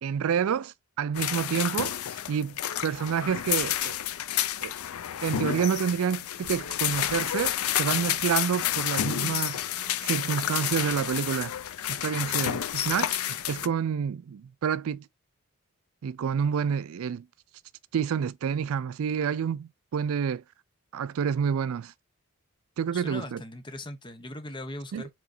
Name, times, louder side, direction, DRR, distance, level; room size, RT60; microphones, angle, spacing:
voice 1, 0.0-4.0 4.6-4.7 5.2-9.6 10.0-11.5 11.9-15.0 16.0-17.3 17.9-20.4 20.9-21.9 22.8-23.4 24.9-25.1, right 7 dB, 75° right, 0.4 m, -29 dB
sound 1, 1.1-13.7, left 11 dB, 80° left, 0.5 m, -30 dB
voice 2, 22.9-25.2, left 1 dB, 20° left, 0.8 m, -39 dB
5.0 x 3.7 x 2.6 m
head